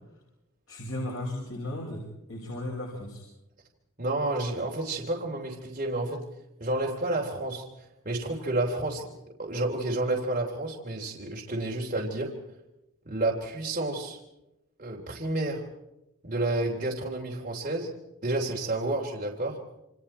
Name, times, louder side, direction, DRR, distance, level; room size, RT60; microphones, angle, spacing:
voice 1, 0.7-3.2, left 1 dB, 65° left, -1 dB, 5.7 m, -35 dB
voice 2, 4.0-6.2 6.6-9.1 9.4-12.4 13.0-14.2 14.8-15.7 16.2-17.9 18.2-19.6, right 2 dB, 35° right, -2 dB, 3.2 m, -30 dB
28.0 x 26.5 x 4.4 m, 0.89 s
head